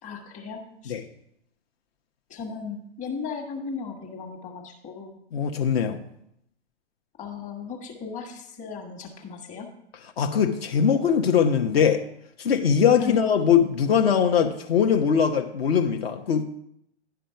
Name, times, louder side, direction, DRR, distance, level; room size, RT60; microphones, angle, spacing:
voice 1, 0.0-0.9 2.3-5.2 7.2-9.7 13.0-13.2, left 5 dB, 20° left, 3 dB, 1.5 m, -36 dB
voice 2, 5.3-6.0 10.2-12.0 12.4-16.4, left 7 dB, 60° left, 5 dB, 1.1 m, -21 dB
10.5 x 5.1 x 5.7 m, 0.74 s
hypercardioid pair, 125°, 35 cm